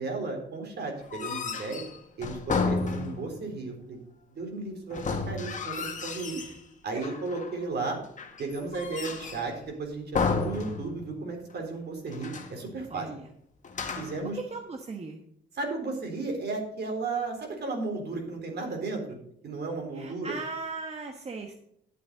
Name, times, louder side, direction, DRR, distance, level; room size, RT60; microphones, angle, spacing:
voice 1, 0.0-1.8 2.2-4.0 4.4-5.0 5.3-6.4 6.8-8.0 8.4-13.1 13.9-14.4 15.5-19.2 19.4-20.3, right 3 dB, 55° right, 2 dB, 3.9 m, -34 dB
sound 1, 1.0-3.5 4.9-6.6 7.0-7.6 8.2-9.6 10.1-11.2 11.5-11.6 12.1-12.6 13.6-14.3, left 4 dB, 40° left, 1.7 m, -32 dB
voice 2, 12.9-13.3 14.3-15.2 19.9-21.5, right 4 dB, 30° right, 4 dB, 1.2 m, -38 dB
11.0 x 8.6 x 4.0 m, 0.74 s
cardioid pair, 90°, 20 cm